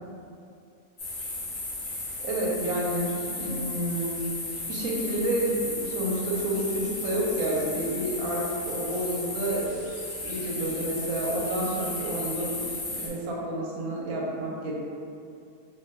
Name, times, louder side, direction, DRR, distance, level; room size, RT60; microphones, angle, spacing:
Afternoon Highway, 1.0-13.1, left 2 dB, 80° left, 0.4 m, -35 dB
voice 1, 2.2-4.2 4.7-9.8 10.2-12.5 12.8-14.7, right 1 dB, 70° right, -4 dB, 1.0 m, -29 dB
2.5 x 2.2 x 3.3 m, 2.5 s
omnidirectional pair, 1.7 m